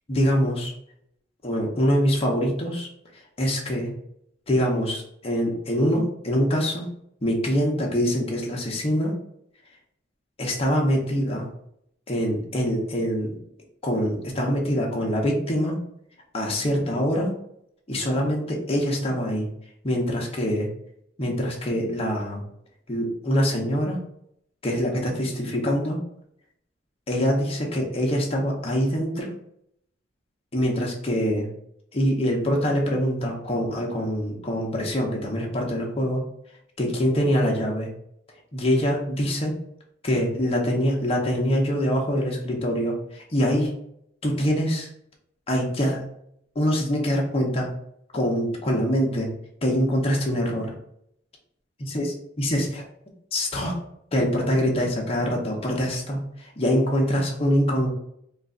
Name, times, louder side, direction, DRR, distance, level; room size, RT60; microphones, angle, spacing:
voice 1, 0.1-0.7 1.4-2.9 3.4-3.9 4.5-6.8 7.2-9.1 10.4-11.5 12.1-13.4 13.8-15.8 16.3-17.3 17.9-19.5 19.8-20.7 21.2-22.4 22.9-24.0 24.6-26.0 27.1-29.3 30.5-31.5 31.9-36.2 36.8-37.9 38.5-39.5 40.0-43.7 44.2-44.9 45.5-46.0 46.6-47.7 48.1-49.3 49.6-50.7 51.9-52.1 52.4-52.8 53.3-53.8 54.1-57.9, equal, 30° left, -1 dB, 0.8 m, -24 dB
3.1 x 2.4 x 3.8 m, 0.73 s
head